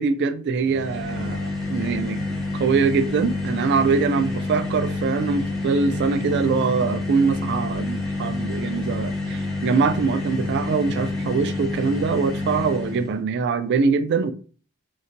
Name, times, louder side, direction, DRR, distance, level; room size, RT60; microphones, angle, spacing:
voice 1, 0.0-2.2 2.5-14.3, right 5 dB, 55° right, 0.3 m, -23 dB
sound 1, 0.6-13.2, left 2 dB, ahead, 0.7 m, -28 dB
4.0 x 2.1 x 2.6 m
head